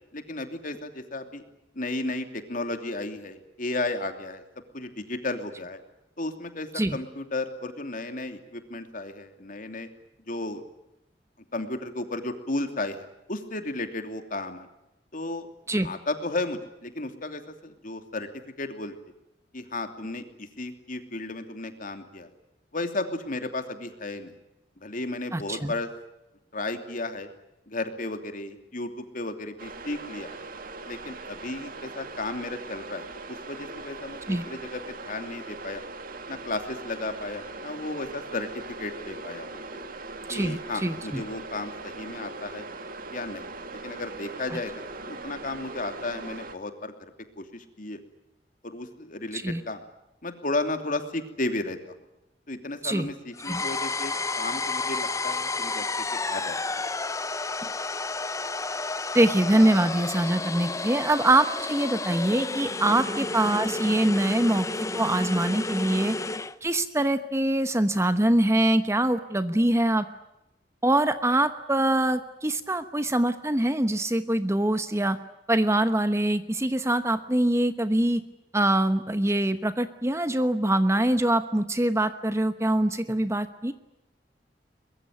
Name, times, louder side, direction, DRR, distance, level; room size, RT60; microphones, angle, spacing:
voice 1, 0.1-1.4 1.7-4.4 4.7-5.8 6.2-9.9 10.3-10.6 11.5-14.7 15.1-15.5 15.8-18.3 18.6-18.9 19.5-22.3 22.7-24.3 24.8-25.9 26.5-27.3 27.7-30.4 30.9-35.8 36.3-39.6 40.3-42.7 43.1-43.4 43.8-46.9 47.4-48.0 48.6-49.8 50.2-51.9 52.5-55.8 56.1-56.7 62.8-63.0, left 2 dB, 50° left, 7 dB, 2.9 m, -34 dB
voice 2, 25.3-25.7 34.3-34.4 40.3-41.2 44.5-44.6 49.3-49.6 52.8-53.1 53.5-53.6 59.1-66.2 66.6-70.0 70.8-75.2 75.5-78.2 78.5-83.7, right 1 dB, 15° right, 10 dB, 1.0 m, -24 dB
sound 1, 29.6-46.6, right 3 dB, 55° right, 2.1 m, -40 dB
sound 2, 53.4-66.5, left 3 dB, 20° left, 0.8 m, -31 dB
23.0 x 22.0 x 9.4 m, 0.90 s
head